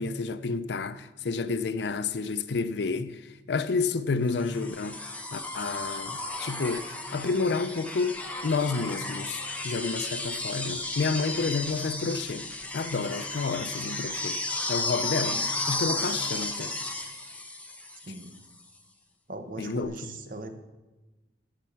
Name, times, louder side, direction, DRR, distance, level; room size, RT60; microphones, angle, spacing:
voice 1, 0.0-3.2 3.5-8.1 8.4-12.5 12.7-14.4 14.7-16.7 19.6-19.9, left 4 dB, 70° left, 0.5 m, -30 dB
sound 1, 4.4-18.4 19.8-19.9, left 2 dB, 10° left, 1.0 m, -34 dB
voice 2, 18.0-18.3 19.3-20.5, right 2 dB, 50° right, 1.1 m, -39 dB
10.5 x 5.6 x 8.4 m
head